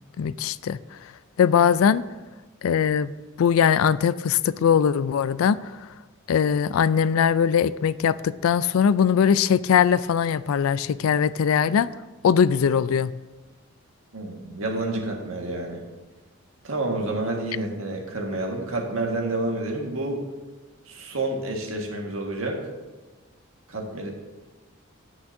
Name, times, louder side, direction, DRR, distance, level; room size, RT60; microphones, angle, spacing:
voice 1, 0.2-0.8 1.4-2.0 2.6-3.1 3.4-5.6 6.3-11.9 12.2-13.1, left 7 dB, 85° left, 17 dB, 0.3 m, -20 dB
voice 2, 14.1-15.8 16.6-20.2 20.9-22.6 23.7-24.1, right 2 dB, 85° right, 1 dB, 1.7 m, -29 dB
16.0 x 6.0 x 2.7 m, 1.2 s
head